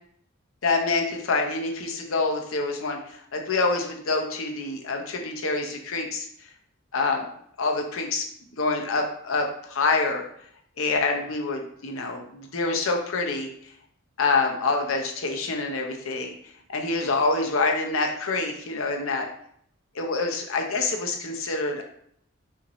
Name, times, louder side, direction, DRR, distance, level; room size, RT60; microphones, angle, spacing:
voice 1, 0.6-6.3 6.9-7.3 7.6-8.2 8.6-10.2 10.8-13.5 14.2-16.3 16.7-19.3 19.9-21.8, left 3 dB, 90° left, 2 dB, 0.7 m, -26 dB
5.7 x 2.7 x 3.0 m, 0.67 s
head